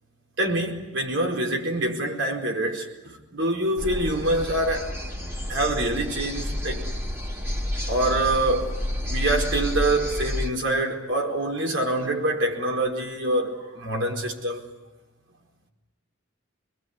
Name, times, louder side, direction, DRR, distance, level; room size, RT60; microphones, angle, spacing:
voice 1, 0.4-5.0 5.5-6.9 7.9-8.8 9.1-14.7, right 1 dB, 65° right, 4.6 m, -25 dB
sound 1, 3.8-10.5, left 1 dB, 10° right, 2.3 m, -30 dB
27.0 x 21.5 x 9.7 m
head